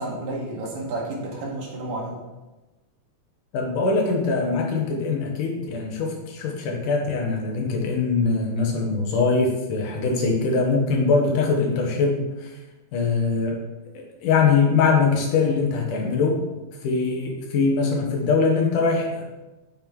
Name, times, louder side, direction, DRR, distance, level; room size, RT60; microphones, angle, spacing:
voice 1, 0.0-2.2, right 2 dB, 85° right, -2 dB, 3.1 m, -31 dB
voice 2, 3.5-12.5 12.9-13.6 14.2-16.4 16.8-19.2, left 4 dB, 75° left, 1 dB, 2.8 m, -22 dB
7.7 x 6.5 x 3.7 m, 1.1 s
omnidirectional pair, 3.7 m